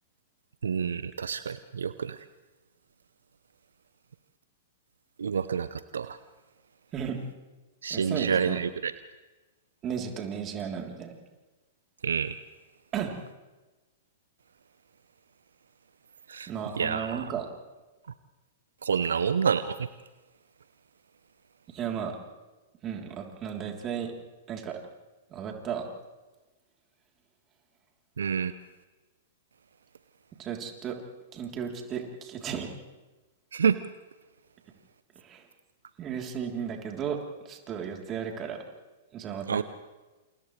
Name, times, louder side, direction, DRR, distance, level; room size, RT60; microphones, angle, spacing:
voice 1, 0.6-2.2 5.2-6.2 7.8-8.9 12.0-12.4 16.3-16.5 16.8-17.3 18.8-19.8 28.2-28.5 33.5-33.8 39.5-39.6, right 6 dB, 75° right, 13 dB, 0.7 m, -28 dB
voice 2, 7.9-8.6 9.8-11.2 12.9-13.1 16.5-17.5 21.7-22.2 22.8-24.1 24.5-24.8 25.3-25.9 30.4-31.0 31.3-32.7 35.2-35.4 36.0-37.2 37.5-38.6 39.1-39.6, right 8 dB, 30° right, 1 dB, 3.5 m, -34 dB
29.0 x 28.5 x 3.3 m, 1.2 s
figure-of-eight pair, 110°, 0 cm